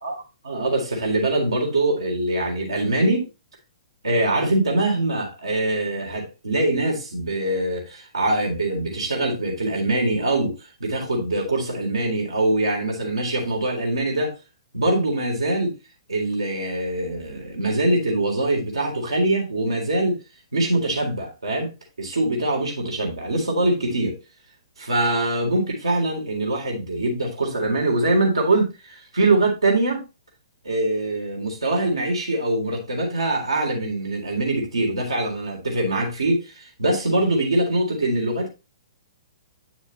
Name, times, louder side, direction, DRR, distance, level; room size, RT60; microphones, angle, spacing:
voice 1, 0.5-3.3 4.0-14.3 14.7-15.7 16.1-20.2 20.5-21.7 22.0-24.2 24.8-30.0 30.6-38.5, right 2 dB, 75° right, 3.7 m, -23 dB
8.8 x 6.9 x 3.0 m
figure-of-eight pair, 120°, 3 cm